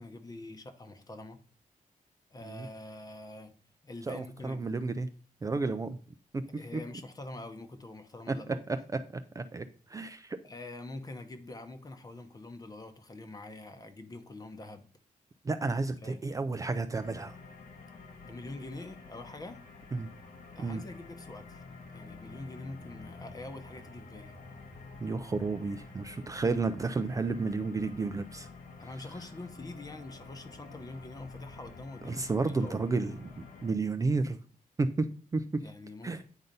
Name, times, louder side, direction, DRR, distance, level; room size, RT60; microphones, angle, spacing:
voice 1, 0.0-1.4 2.3-3.5 3.8-4.7 6.6-8.6 10.4-14.9 16.0-16.2 18.3-19.6 20.5-21.6 21.9-24.4 28.8-32.8 35.6-36.2, left 2 dB, 25° left, 8 dB, 0.9 m, -45 dB
voice 2, 4.1-5.1 5.4-6.0 6.3-6.4 6.7-6.8 8.3-8.4 9.4-9.6 9.9-10.4 15.4-17.4 19.9-20.1 20.6-20.8 25.0-28.5 32.1-33.3 33.6-34.4 34.8-35.6 36.0-36.2, right 3 dB, 25° right, 9 dB, 0.5 m, -31 dB
sound 1, 16.9-33.7, left 3 dB, 80° left, 1.4 m, -49 dB
9.1 x 4.0 x 5.4 m, 0.41 s
wide cardioid pair, 155°, 14 cm